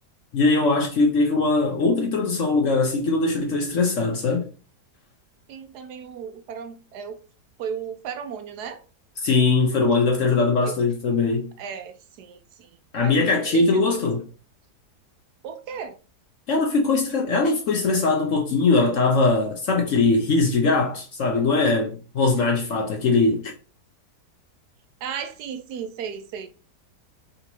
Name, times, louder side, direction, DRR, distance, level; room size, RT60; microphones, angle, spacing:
voice 1, 0.3-4.5 9.2-11.5 12.9-14.2 16.5-23.5, left 3 dB, 60° left, 0.9 m, -21 dB
voice 2, 5.5-7.2 7.6-8.8 10.7-10.8 11.6-14.0 15.4-15.9 25.0-26.5, right 7 dB, 75° right, 1.1 m, -35 dB
3.9 x 2.7 x 4.4 m
omnidirectional pair, 1.8 m